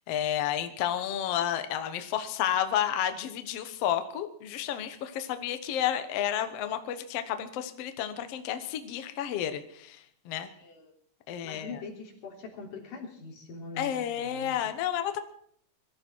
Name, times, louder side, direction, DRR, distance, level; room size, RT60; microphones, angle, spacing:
voice 1, 0.1-10.5 11.3-11.8 13.8-15.2, left 10 dB, 90° left, 8 dB, 1.3 m, -31 dB
voice 2, 10.5-10.9 11.4-14.5, left 4 dB, 55° left, -1 dB, 4.8 m, -43 dB
22.0 x 13.5 x 4.6 m, 0.67 s
omnidirectional pair, 4.6 m